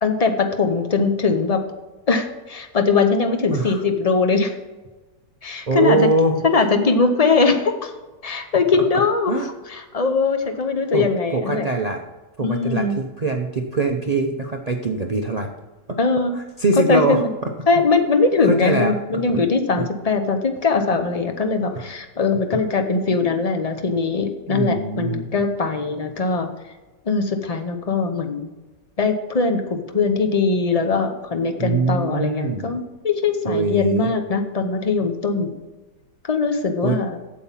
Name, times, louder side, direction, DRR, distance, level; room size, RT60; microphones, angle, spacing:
voice 1, 0.0-1.6 2.1-4.5 5.4-6.1 6.4-7.9 8.2-9.4 9.7-11.7 12.4-13.0 16.0-16.4 16.9-17.3 17.7-26.5 27.1-28.5 29.0-35.5 36.2-37.2, left 4 dB, 45° left, 6 dB, 0.5 m, -21 dB
voice 2, 3.5-3.8 5.7-6.4 9.3-9.5 10.9-12.0 12.4-15.5 16.3-17.5 18.4-19.2 19.8-19.9 21.7-21.8 22.5-22.6 24.5-25.3 31.6-32.7 33.5-34.1 36.8-37.0, right 3 dB, 70° right, 3 dB, 0.3 m, -22 dB
8.5 x 7.4 x 5.7 m, 1.2 s
omnidirectional pair, 1.8 m